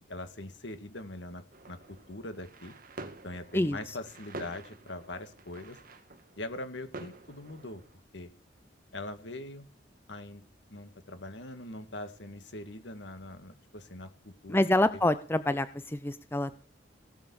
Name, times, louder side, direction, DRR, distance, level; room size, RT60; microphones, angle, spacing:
voice 1, 0.1-2.7 3.2-5.8 6.4-7.8 8.1-8.3 8.9-9.7 10.1-10.4 10.7-14.6, left 2 dB, 75° left, 8 dB, 2.0 m, -42 dB
sound 1, 1.5-8.0, right 2 dB, 50° right, 1.6 m, -48 dB
voice 2, 14.5-16.6, left 1 dB, 10° left, 12 dB, 0.6 m, -27 dB
17.5 x 7.3 x 7.2 m, 0.40 s
head